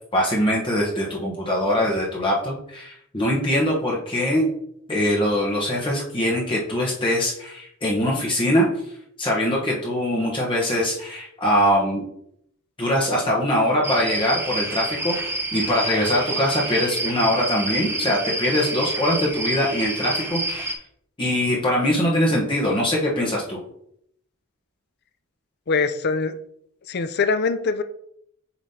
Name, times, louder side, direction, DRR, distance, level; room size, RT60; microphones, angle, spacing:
voice 1, 0.1-4.5 4.9-8.7 9.2-12.0 12.8-15.2 15.5-20.7 21.2-23.6, left 1 dB, 25° left, -3 dB, 1.0 m, -22 dB
sound 1, 13.8-20.8, right 2 dB, 10° right, 0.6 m, -28 dB
voice 2, 25.7-26.3 26.9-27.8, left 4 dB, 50° left, 10 dB, 0.5 m, -23 dB
7.1 x 5.1 x 2.8 m, 0.72 s
head